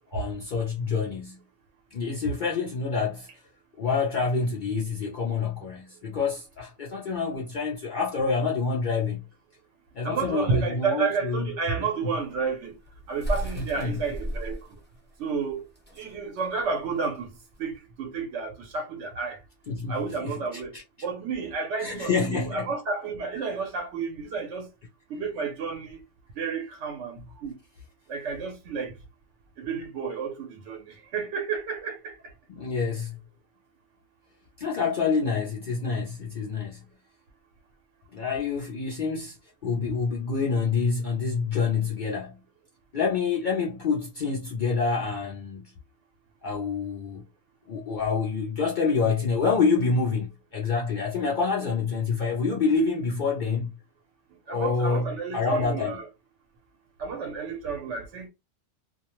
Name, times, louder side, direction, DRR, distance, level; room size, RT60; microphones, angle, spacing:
voice 1, 0.1-1.4 1.9-3.3 3.8-9.2 9.9-11.5 11.8-12.1 13.6-14.0 19.7-20.8 21.8-22.7 32.5-33.2 34.6-36.9 38.1-39.4 39.6-42.4 42.9-45.7 46.4-47.2 47.7-53.7 54.5-56.0, left 5 dB, 55° left, 0.6 m, -27 dB
voice 2, 10.0-12.7 13.1-14.6 15.2-15.6 16.0-17.3 17.6-19.4 19.9-24.7 25.1-26.0 26.4-27.6 28.1-28.9 29.6-32.2 54.5-56.1 57.0-58.3, right 5 dB, 80° right, 1.0 m, -31 dB
sound 1, 12.2-17.7, equal, 10° left, 0.8 m, -36 dB
2.4 x 2.0 x 2.8 m
omnidirectional pair, 1.2 m